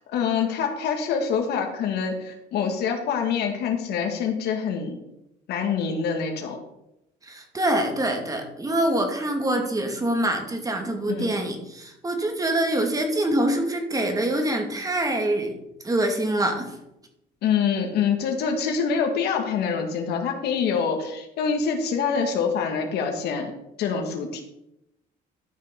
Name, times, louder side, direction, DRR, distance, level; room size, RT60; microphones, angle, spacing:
voice 1, 0.1-5.0 5.5-6.6 11.1-11.3 17.4-23.5 23.8-24.4, left 6 dB, 75° left, 4 dB, 2.0 m, -25 dB
voice 2, 7.2-15.5 15.8-16.8, right 1 dB, 20° right, 4 dB, 2.1 m, -25 dB
12.5 x 5.6 x 5.3 m, 0.84 s
cardioid pair, 110°, 17 cm